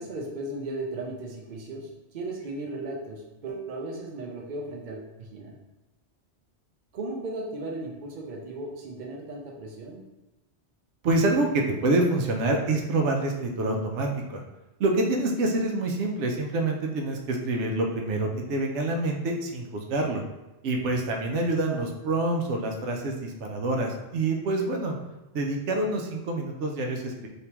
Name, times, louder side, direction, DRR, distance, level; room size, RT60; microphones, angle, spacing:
voice 1, 0.0-5.6 6.9-10.0 20.8-20.9, right 2 dB, 50° right, -1 dB, 0.7 m, -36 dB
voice 2, 11.0-14.4 14.8-20.2 20.6-25.0 25.3-27.3, right 2 dB, 85° right, 1 dB, 0.9 m, -26 dB
3.4 x 2.9 x 2.9 m, 1.0 s
omnidirectional pair, 1.2 m